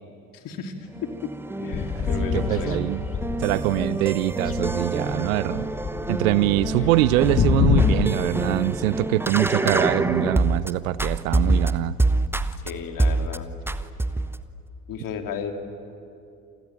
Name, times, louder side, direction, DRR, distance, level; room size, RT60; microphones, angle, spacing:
voice 1, 0.3-0.7 1.0-1.3 1.6-2.8 12.6-13.5 14.9-15.5, left 7 dB, 45° left, 2.9 m, -33 dB
sound 1, 0.9-10.7 11.0-12.7 13.0-13.4 13.7-14.4, right 2 dB, 5° right, 1.0 m, -26 dB
sound 2, 1.7-4.0 4.3-8.1, left 6 dB, 30° left, 1.5 m, -25 dB
voice 2, 2.3-3.0 3.4-5.7 6.1-12.0, right 16 dB, 65° right, 0.8 m, -23 dB
28.5 x 23.0 x 9.0 m
figure-of-eight pair, 55°, 44 cm